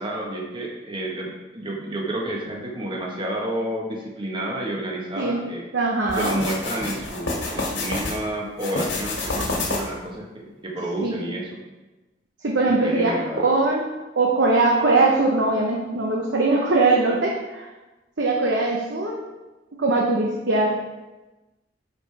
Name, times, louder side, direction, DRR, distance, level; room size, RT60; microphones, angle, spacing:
voice 1, 0.0-5.7 6.2-11.6 12.6-13.5, right 1 dB, 25° right, -1 dB, 1.3 m, -30 dB
voice 2, 5.7-6.4 11.0-11.2 12.4-13.1 13.4-13.8 14.2-17.7 18.2-19.2 19.8-20.8, right 3 dB, 70° right, -1 dB, 0.9 m, -21 dB
sound 1, 6.1-8.2 8.6-10.0, left 3 dB, 90° left, 2.0 m, -28 dB
10.5 x 5.0 x 3.4 m, 1.1 s
head